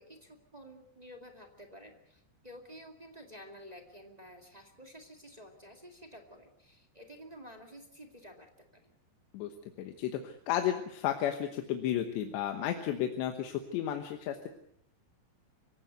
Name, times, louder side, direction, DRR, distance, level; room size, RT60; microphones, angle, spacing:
voice 1, 0.0-8.9, equal, 20° right, 2 dB, 1.0 m, -51 dB
voice 2, 9.8-14.5, left 10 dB, 85° left, 5 dB, 3.5 m, -33 dB
25.0 x 16.5 x 8.1 m, 0.71 s
omnidirectional pair, 4.9 m